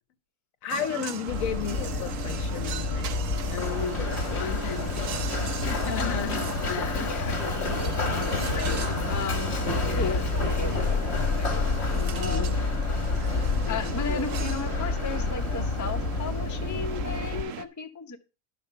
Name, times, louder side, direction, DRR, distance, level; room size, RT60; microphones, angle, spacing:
voice 1, 0.6-5.4 5.6-7.1 7.6-8.3 9.7-10.3 11.9-12.5 13.0-14.3, left 9 dB, 70° left, 1.1 m, -35 dB
sound 1, 0.7-17.6, right 9 dB, 65° right, 1.1 m, -38 dB
Run, 1.3-17.4, left 3 dB, 50° left, 1.5 m, -28 dB
voice 2, 7.0-9.5 10.0-12.5 12.9-13.2 13.7-18.2, left 4 dB, 20° left, 0.6 m, -36 dB
sound 2, 8.1-10.2, right 3 dB, 35° right, 0.9 m, -45 dB
11.5 x 5.3 x 5.5 m
omnidirectional pair, 1.5 m